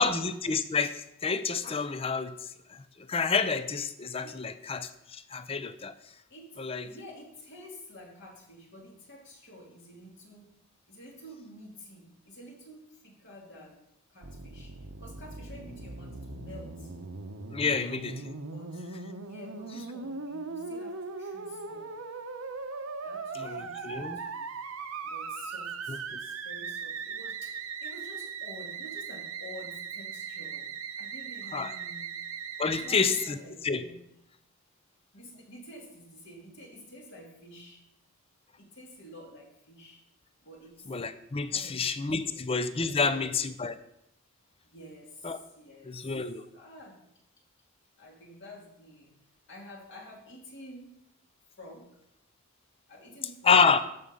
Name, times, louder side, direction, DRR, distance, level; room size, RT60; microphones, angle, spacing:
voice 1, 0.0-2.3 2.7-2.8 3.1-5.9 6.6-6.9 17.5-18.1 23.3-24.2 25.9-26.2 31.5-31.7 32.6-33.4 33.6-33.8 40.9-43.8 45.2-45.4 45.8-46.4 53.4-53.8, left 5 dB, 25° left, 12 dB, 0.5 m, -28 dB
voice 2, 4.2-4.6 6.3-10.5 10.9-13.8 14.1-14.7 15.0-16.9 17.6-18.0 18.5-18.8 19.2-21.9 23.0-24.5 25.0-27.5 27.8-32.2 32.7-34.0 35.1-37.8 38.6-40.0 40.4-40.9 41.5-43.4 44.6-46.0 46.5-47.0 48.0-49.1 49.5-50.9 51.6-51.9 52.9-53.6, equal, 55° left, -1 dB, 2.5 m, -49 dB
Musical instrument, 14.2-33.3, right 5 dB, 75° right, 0.9 m, -39 dB
13.5 x 5.0 x 5.5 m, 0.80 s
head